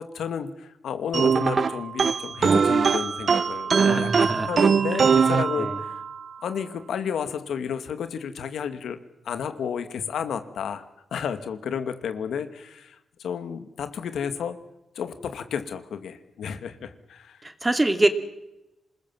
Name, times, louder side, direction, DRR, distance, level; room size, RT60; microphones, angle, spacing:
voice 1, 0.0-6.0 6.4-9.0 9.2-10.8 11.1-14.6 14.9-17.4, left 7 dB, 85° left, 9 dB, 2.4 m, -32 dB
sound 1, 1.1-6.2, right 6 dB, 45° right, 0.8 m, -22 dB
voice 2, 3.8-4.5 5.6-5.7 17.4-18.1, right 2 dB, 15° right, 8 dB, 2.5 m, -24 dB
27.5 x 20.5 x 7.5 m, 0.94 s
wide cardioid pair, 115°, 0 cm